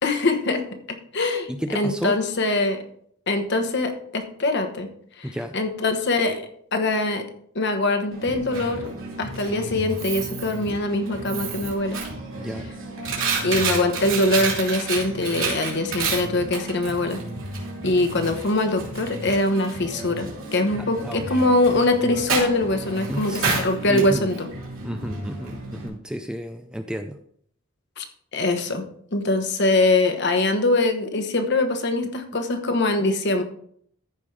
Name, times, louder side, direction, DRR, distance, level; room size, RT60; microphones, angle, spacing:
voice 1, 0.0-2.8 3.3-4.9 5.2-6.4 6.7-7.2 7.5-8.9 9.2-12.0 13.4-17.2 17.8-24.5 28.0-28.1 28.3-28.9 29.1-33.4, left 2 dB, 50° left, 7 dB, 1.1 m, -23 dB
voice 2, 1.5-2.2 5.2-5.6 12.4-12.7 21.0-21.4 23.1-23.4 23.9-24.3 24.8-27.2, equal, 5° right, 7 dB, 0.4 m, -31 dB
Coin (dropping), 8.1-25.9, right 4 dB, 65° right, 3.1 m, -31 dB
14.0 x 5.3 x 3.3 m, 0.63 s
head